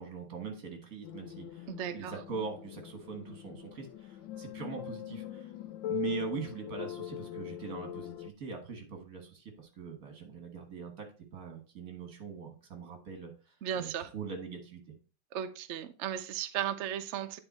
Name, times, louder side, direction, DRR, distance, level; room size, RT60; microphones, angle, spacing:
voice 1, 0.0-5.5 5.9-11.1 11.3-15.0, right 6 dB, 50° right, 2.0 m, -42 dB
sound 1, 1.0-8.3, left 13 dB, 85° left, 1.4 m, -42 dB
voice 2, 1.7-2.1 13.6-14.1 15.3-17.4, right 10 dB, 85° right, 0.6 m, -35 dB
8.9 x 4.4 x 4.2 m
omnidirectional pair, 2.0 m